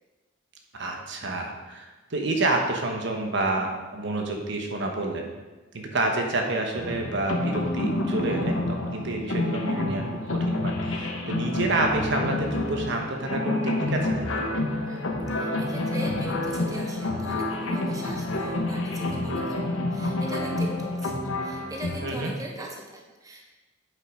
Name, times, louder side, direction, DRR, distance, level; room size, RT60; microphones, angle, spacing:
voice 1, 0.7-5.3 5.7-14.4 22.0-22.3, right 2 dB, 65° right, 2 dB, 1.2 m, -29 dB
sound 1, 6.8-22.1, left 2 dB, 85° left, 1.1 m, -28 dB
voice 2, 14.8-23.5, right 1 dB, 20° right, -1 dB, 1.1 m, -40 dB
7.9 x 5.7 x 5.0 m, 1.2 s
head